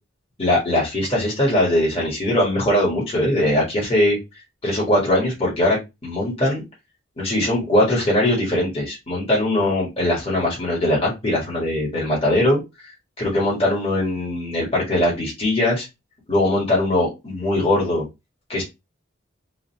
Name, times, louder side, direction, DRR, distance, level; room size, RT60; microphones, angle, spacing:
voice 1, 0.4-4.2 4.6-6.6 7.2-12.6 13.2-15.9 16.3-18.0 18.5-18.6, left 1 dB, 30° left, -4 dB, 1.6 m, -21 dB
3.9 x 2.4 x 4.2 m, 0.23 s
head